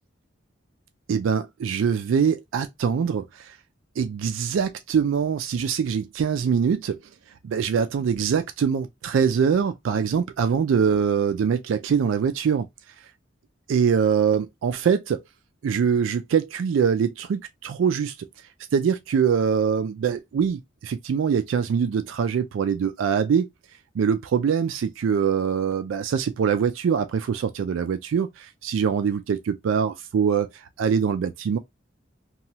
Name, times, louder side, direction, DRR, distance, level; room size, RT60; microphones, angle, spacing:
voice 1, 1.1-3.6 4.0-7.0 7.4-12.7 13.7-15.2 15.6-18.3 18.7-23.5 23.9-31.6, right 7 dB, 75° right, 0.3 m, -23 dB
3.0 x 2.2 x 2.7 m
head